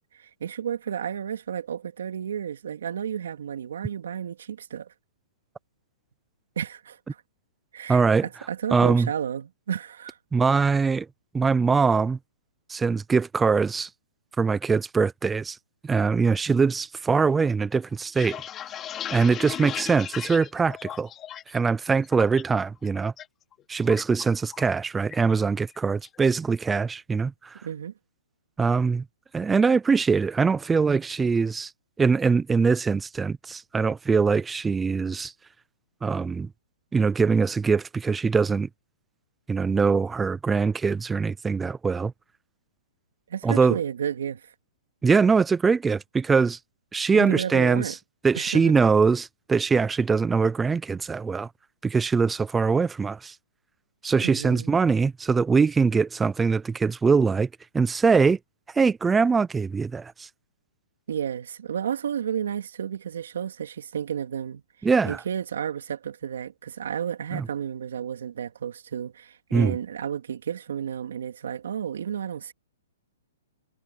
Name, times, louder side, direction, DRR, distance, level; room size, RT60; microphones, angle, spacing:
voice 1, 0.1-4.9 6.6-7.2 7.7-10.2 27.6-27.9 43.3-44.5 47.1-47.9 48.3-48.7 54.2-54.7 61.1-64.6 65.0-72.5, right 8 dB, 70° right, 3.4 m, -32 dB
voice 2, 7.9-8.3 8.7-9.1 10.3-11.1 11.3-12.2 12.7-13.9 14.4-15.6 15.8-18.4 19.1-21.1 21.5-23.1 23.7-27.3 28.6-29.0 29.3-31.7 32.0-35.3 36.0-36.5 36.9-38.7 39.5-42.1 43.4-43.8 45.0-46.6 46.9-47.9 48.2-51.5 51.8-53.3 54.0-57.5 57.7-58.4 58.8-60.3 64.8-65.2 67.3-67.5 69.5-69.8, right 5 dB, 10° right, 0.5 m, -22 dB
sound 1, 17.9-21.6 21.9-22.4 22.8-23.3 23.5-24.8 25.1-25.3 25.7-26.2, left 10 dB, 15° left, 2.7 m, -37 dB
hypercardioid pair, 160°, 0 cm